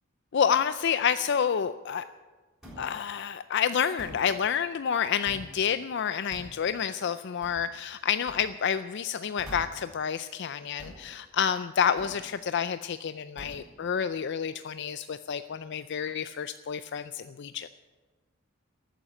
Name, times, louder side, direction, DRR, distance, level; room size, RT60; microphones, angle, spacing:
voice 1, 0.3-2.0 2.8-17.7, left 7 dB, 55° left, 12 dB, 0.4 m, -29 dB
sound 1, 2.6-2.9 4.0-4.3 5.3-5.5 6.3-6.6 7.4-7.6 8.3-8.4 9.4-9.8 10.8-11.1 12.0-12.2 13.4-13.7, equal, 5° right, 6.6 m, -44 dB
13.5 x 9.2 x 10.0 m, 1.3 s
head